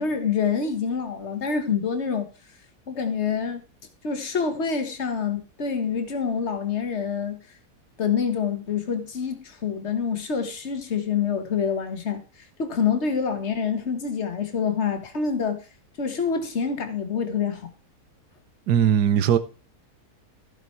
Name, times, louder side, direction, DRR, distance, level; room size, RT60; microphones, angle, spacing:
voice 1, 0.0-2.3 2.9-3.6 4.0-7.4 8.0-12.2 12.6-15.6 16.0-17.7, left 6 dB, 45° left, 1.7 m, -26 dB
voice 2, 18.7-19.4, right 9 dB, 90° right, 1.4 m, -19 dB
14.5 x 6.1 x 4.6 m
omnidirectional pair, 1.7 m